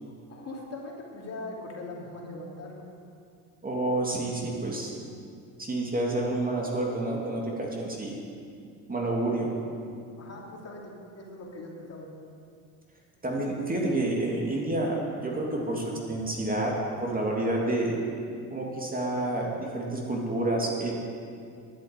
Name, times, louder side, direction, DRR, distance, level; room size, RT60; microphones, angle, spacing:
voice 1, 0.3-2.9 9.2-9.4 10.2-12.1, left 2 dB, 35° left, -2 dB, 2.8 m, -41 dB
voice 2, 3.6-4.9 5.6-8.2 8.9-9.5 13.2-18.0 18.5-20.9, right 2 dB, 20° right, -2 dB, 2.7 m, -29 dB
11.0 x 7.9 x 9.3 m, 2.4 s
supercardioid pair, 95°, 41 cm